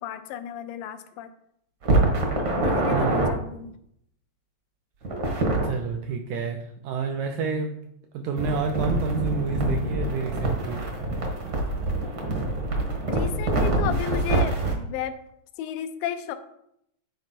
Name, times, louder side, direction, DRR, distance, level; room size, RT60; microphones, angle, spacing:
voice 1, 0.0-1.3 2.6-3.8 13.1-15.1 15.6-16.4, left 10 dB, 85° left, 9 dB, 2.3 m, -33 dB
sound 1, 1.8-3.3 5.0-5.7 8.4-14.8, right 2 dB, 55° right, 1.2 m, -25 dB
voice 2, 2.9-3.3 5.6-7.7 8.1-10.8, right 5 dB, 80° right, 4 dB, 1.7 m, -29 dB
9.3 x 4.2 x 4.3 m, 0.75 s
omnidirectional pair, 4.0 m